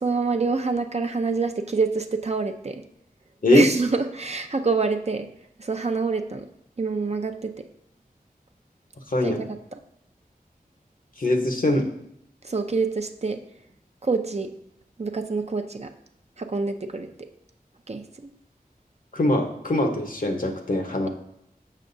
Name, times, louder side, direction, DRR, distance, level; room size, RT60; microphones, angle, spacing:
voice 1, 0.0-2.8 3.5-5.3 5.6-6.5 6.8-7.6 9.2-9.5 9.7-9.8 12.4-13.4 14.0-14.5 15.0-15.9 16.4-17.1 17.9-18.3, right 4 dB, 45° right, 6 dB, 0.6 m, -26 dB
voice 2, 11.2-11.8 19.1-21.1, left 1 dB, 65° left, 3 dB, 1.0 m, -22 dB
7.3 x 5.7 x 2.7 m, 0.78 s
wide cardioid pair, 40°, 15 cm